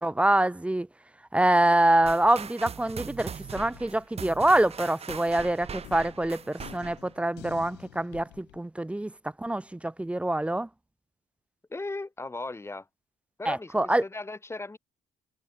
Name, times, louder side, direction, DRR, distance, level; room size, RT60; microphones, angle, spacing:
voice 1, 0.0-0.9 1.3-9.1 9.4-10.7 13.5-14.0, right 1 dB, 5° right, 0.6 m, -25 dB
sound 1, 1.8-3.2 3.6-8.6, left 18 dB, 85° left, 2.7 m, -50 dB
sound 2, 2.1-7.1, right 7 dB, 35° right, 3.0 m, -40 dB
voice 2, 11.7-12.9 13.4-14.8, left 2 dB, 15° left, 3.7 m, -37 dB
cardioid pair, 110°, 17 cm